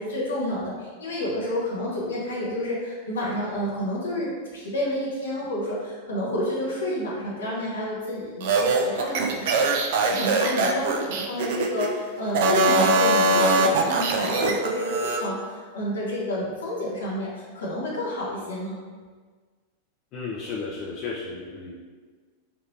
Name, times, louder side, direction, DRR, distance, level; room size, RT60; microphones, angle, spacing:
voice 1, 0.0-18.8, left 1 dB, 80° left, -5 dB, 0.8 m, -30 dB
sound 1, 8.4-11.9 12.3-15.2, right 3 dB, 60° right, 0.4 m, -22 dB
voice 2, 20.1-21.7, left 4 dB, 45° left, -5 dB, 0.5 m, -33 dB
3.5 x 2.8 x 2.7 m, 1.5 s
hypercardioid pair, 95°, 0 cm